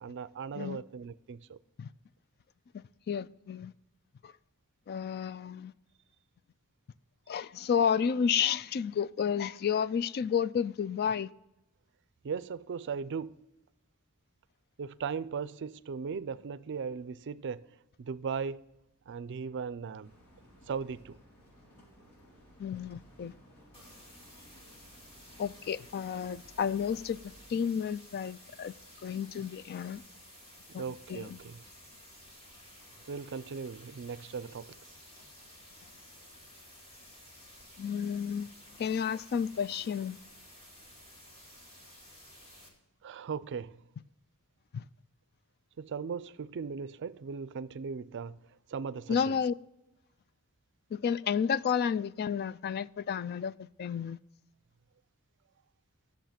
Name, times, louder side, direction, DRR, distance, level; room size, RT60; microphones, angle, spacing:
voice 1, 0.0-1.6 12.2-13.4 14.8-18.6 19.1-20.1 20.7-21.2 30.8-31.6 33.1-34.8 43.0-43.8 45.8-48.4 48.7-49.4, right 6 dB, 55° right, 0.4 m, -38 dB
voice 2, 3.1-3.7 4.2-4.3 4.9-5.7 7.3-11.3 22.6-23.3 25.4-27.2 27.5-28.7 29.0-30.0 30.7-30.8 31.1-31.4 37.8-38.5 38.8-40.2 44.7-44.8 49.1-49.5 50.9-54.2, left 7 dB, 45° left, 0.3 m, -31 dB
sound 1, 20.0-27.4, equal, 75° left, 3.9 m, -58 dB
sound 2, 23.7-42.7, equal, 25° left, 2.3 m, -54 dB
11.5 x 7.1 x 5.9 m
head